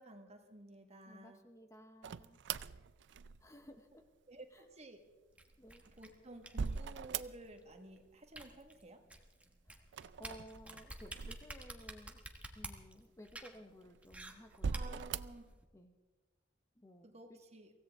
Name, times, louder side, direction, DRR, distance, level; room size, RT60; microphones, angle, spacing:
voice 1, 0.0-1.4 4.3-5.0 6.0-9.0 14.7-15.4 17.0-17.7, right 2 dB, 35° right, 5 dB, 1.6 m, -53 dB
voice 2, 1.0-2.4 3.4-4.0 4.5-4.7 5.6-5.8 9.7-9.9 10.2-12.2 12.5-15.0 15.7-15.9 16.8-17.4, equal, 15° left, 6 dB, 0.8 m, -56 dB
sound 1, 2.0-3.7 5.5-7.8 8.0-8.7 9.9-12.0 12.6-12.7 13.5-14.1 14.5-15.5, right 5 dB, 65° right, 0.5 m, -42 dB
sound 2, 5.4-15.7, right 1 dB, 5° right, 1.3 m, -52 dB
24.0 x 16.5 x 3.6 m, 1.2 s
head